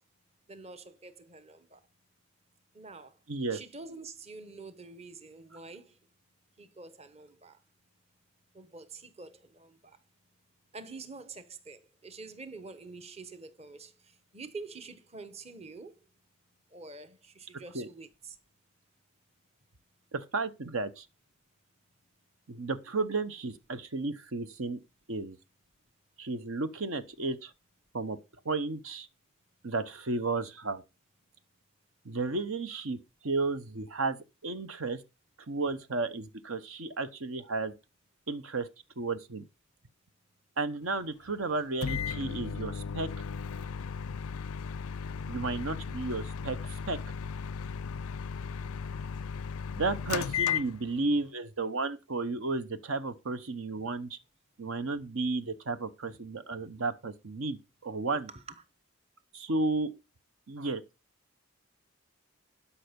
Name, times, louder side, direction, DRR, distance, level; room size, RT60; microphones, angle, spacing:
voice 1, 0.5-1.8 2.7-3.2 3.5-6.0 6.6-7.6 8.5-10.0 10.7-16.0 16.7-18.4 58.3-58.6, right 3 dB, 30° right, 1.0 m, -47 dB
voice 2, 3.3-3.6 17.7-17.9 20.1-21.1 22.5-24.8 25.1-25.4 26.2-27.5 27.9-28.2 28.4-29.1 29.6-30.8 32.0-35.0 35.5-37.7 38.3-38.7 39.0-39.4 40.6-43.1 45.3-47.0 49.8-54.2 54.6-57.6 57.8-58.3 59.3-59.9 60.5-60.8, right 3 dB, 75° right, 0.9 m, -33 dB
Microwave oven, 41.8-51.2, left 6 dB, 90° left, 0.4 m, -35 dB
12.5 x 5.7 x 5.2 m
head